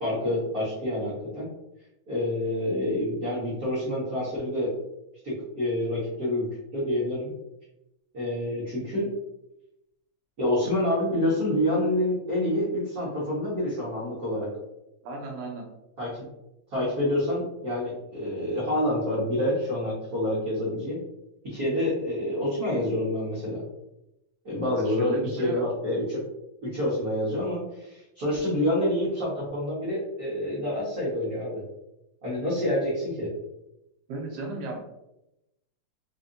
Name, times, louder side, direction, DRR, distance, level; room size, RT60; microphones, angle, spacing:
voice 1, 0.0-1.4 2.1-4.7 5.2-6.5 6.7-7.3 8.1-9.1 10.4-14.5 16.0-16.3 16.7-21.0 21.4-23.6 24.4-26.2 26.6-31.6 32.2-33.3, left 1 dB, 60° right, -9 dB, 0.9 m, -27 dB
voice 2, 15.0-15.7 24.7-25.6 34.1-34.8, right 2 dB, 75° right, 0 dB, 1.5 m, -34 dB
5.0 x 2.5 x 2.6 m, 0.89 s
omnidirectional pair, 3.5 m